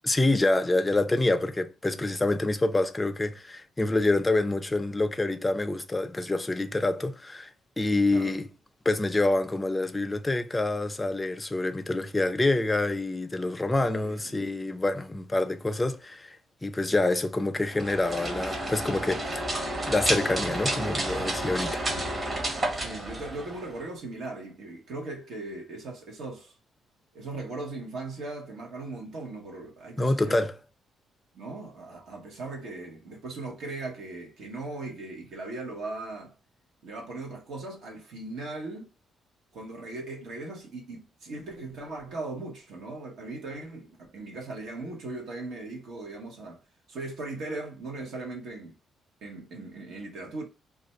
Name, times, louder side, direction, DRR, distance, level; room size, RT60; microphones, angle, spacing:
voice 1, 0.0-7.5 7.8-8.5 8.9-16.4 16.6-21.8 30.0-30.5, left 2 dB, 15° left, 0.4 m, -27 dB
voice 2, 13.8-14.4 22.7-26.5 27.1-30.5 31.3-36.3 36.8-38.9 39.5-46.6 46.9-48.7 49.2-50.4, right 2 dB, 75° right, 1.0 m, -38 dB
sound 1, 17.7-23.9, right 1 dB, 30° right, 0.9 m, -31 dB
2.5 x 2.2 x 4.0 m
cardioid pair, 90°, 0 cm